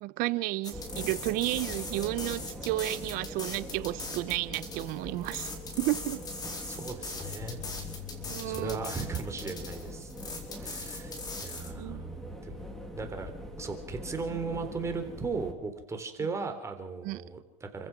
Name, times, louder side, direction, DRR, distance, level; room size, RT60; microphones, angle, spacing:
voice 1, 0.0-5.5 5.8-6.2 8.3-8.8 11.7-12.0 17.0-17.2, right 18 dB, 50° right, 1.0 m, -32 dB
sound 1, 0.6-11.7, left 3 dB, 20° left, 4.2 m, -41 dB
sound 2, 0.7-15.5, left 1 dB, ahead, 3.3 m, -43 dB
voice 2, 6.6-7.6 8.4-10.1 10.6-11.1 11.4-12.6 13.0-13.3 13.6-17.9, right 4 dB, 15° right, 3.7 m, -37 dB
Keyboard (musical), 7.2-11.7, left 14 dB, 45° left, 3.6 m, -48 dB
29.5 x 15.5 x 6.2 m
supercardioid pair, 130°, 18 cm